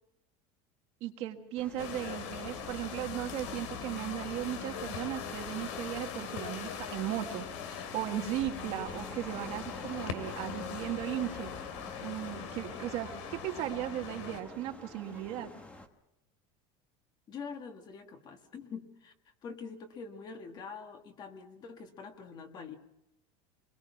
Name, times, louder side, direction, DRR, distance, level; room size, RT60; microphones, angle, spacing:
voice 1, 1.0-11.5 12.0-15.5, right 12 dB, 45° right, 5 dB, 1.6 m, -37 dB
sound 1, 1.6-15.9, left 1 dB, 10° left, 1.1 m, -49 dB
sound 2, 1.8-14.4, left 8 dB, 75° left, 2.5 m, -41 dB
sound 3, 7.9-15.3, right 5 dB, 10° right, 1.6 m, -55 dB
voice 2, 17.3-19.1 19.4-22.8, left 5 dB, 25° left, 6 dB, 1.6 m, -45 dB
26.0 x 21.5 x 5.9 m, 0.87 s
cardioid pair, 180°, 15 cm